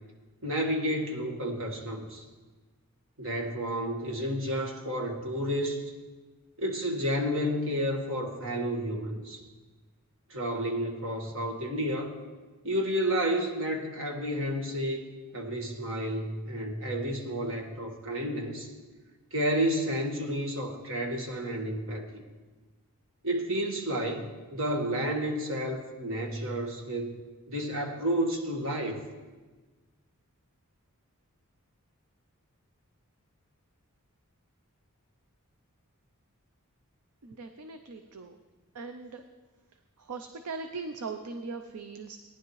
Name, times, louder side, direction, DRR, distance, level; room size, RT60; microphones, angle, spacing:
voice 1, 0.4-2.2 3.2-5.9 6.6-9.4 10.3-12.2 12.6-15.0 15.3-18.7 19.3-22.2 23.2-27.1 27.5-29.0, equal, 65° right, 2 dB, 1.6 m, -31 dB
voice 2, 37.2-38.4 38.7-39.2 40.0-42.2, right 4 dB, 80° right, 7 dB, 0.6 m, -40 dB
18.0 x 10.5 x 3.2 m, 1.3 s
head